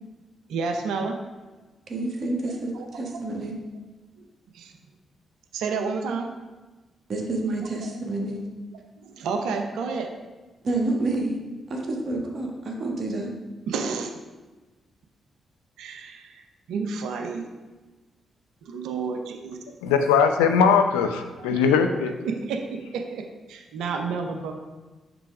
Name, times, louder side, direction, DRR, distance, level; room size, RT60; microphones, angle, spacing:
voice 1, 0.5-1.2 2.7-2.9 4.5-4.7 5.5-6.3 7.8-7.9 9.0-10.1 13.7-14.1 15.8-17.4 18.6-19.6 21.4-21.6 22.2-24.5, right 4 dB, 75° right, 4 dB, 0.6 m, -30 dB
voice 2, 1.9-3.6 7.1-8.4 10.6-11.4 11.7-13.3, right 2 dB, 55° right, 0 dB, 1.3 m, -28 dB
voice 3, 19.8-22.1, left 6 dB, 90° left, 7 dB, 0.4 m, -20 dB
6.0 x 3.4 x 4.8 m, 1.2 s
hypercardioid pair, 45°, 0 cm